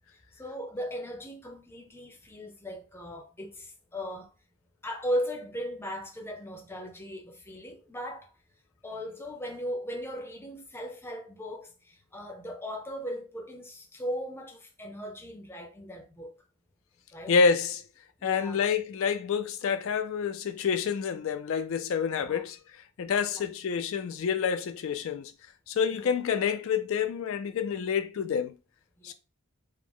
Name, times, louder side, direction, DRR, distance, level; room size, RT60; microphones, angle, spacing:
voice 1, 0.3-4.3 4.8-8.3 8.8-16.4 17.1-17.3 18.2-18.6 22.1-22.4 23.3-23.5 25.9-26.1 29.0-29.1, equal, 10° left, 0.6 m, -37 dB
voice 2, 17.3-17.8 18.2-22.6 23.0-25.3 25.7-28.6 29.0-29.1, left 6 dB, 60° left, 0.3 m, -28 dB
4.9 x 2.1 x 3.5 m
head